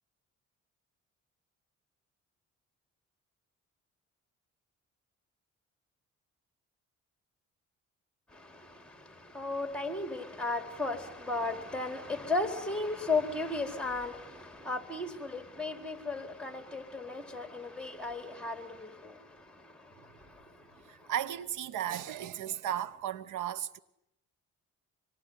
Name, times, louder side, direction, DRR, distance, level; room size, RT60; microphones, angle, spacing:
voice 1, 8.3-21.1, left 3 dB, 5° left, 4.7 m, -36 dB
voice 2, 20.9-23.8, right 10 dB, 85° right, 1.2 m, -35 dB
26.5 x 22.5 x 9.8 m
cardioid pair, 90°, 30 cm